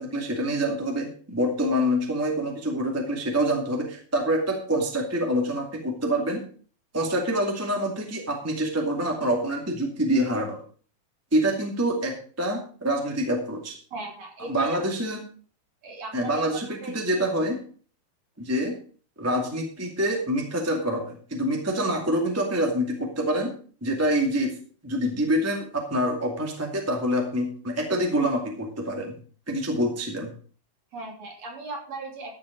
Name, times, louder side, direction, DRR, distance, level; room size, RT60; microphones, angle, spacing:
voice 1, 0.0-6.4 6.9-10.6 11.3-13.7 14.5-15.2 16.1-17.6 18.4-18.7 19.2-23.5 23.8-24.5 24.8-29.1 29.5-30.3, equal, 5° right, 2 dB, 1.2 m, -26 dB
voice 2, 13.9-14.8 15.8-16.4 16.8-17.0 30.9-32.4, right 3 dB, 45° right, 1 dB, 3.8 m, -37 dB
13.5 x 7.5 x 5.2 m, 0.42 s
omnidirectional pair, 4.6 m